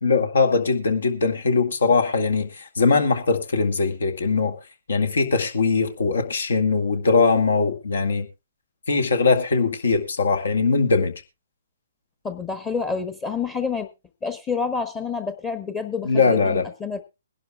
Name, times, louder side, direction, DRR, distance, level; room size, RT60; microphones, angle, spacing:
voice 1, 0.0-4.6 4.9-8.3 8.9-11.1 16.0-16.6, left 4 dB, 75° left, 1.9 m, -21 dB
voice 2, 12.2-13.9 14.2-17.0, left 5 dB, 20° left, 1.0 m, -28 dB
22.5 x 11.5 x 2.3 m
hypercardioid pair, 135°, 0 cm